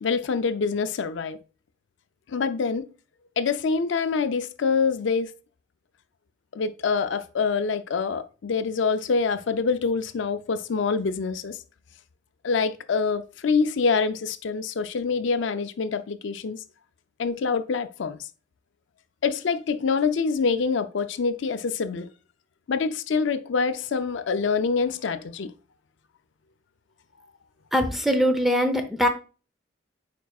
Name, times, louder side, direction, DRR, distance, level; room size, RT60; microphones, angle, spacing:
voice 1, 0.0-1.4 2.3-2.9 3.4-5.3 6.5-11.6 12.4-16.6 17.2-18.2 19.2-22.1 22.7-25.5, left 5 dB, 70° left, 0.4 m, -25 dB
voice 2, 27.7-29.1, equal, ahead, 0.7 m, -22 dB
9.3 x 4.6 x 2.3 m
head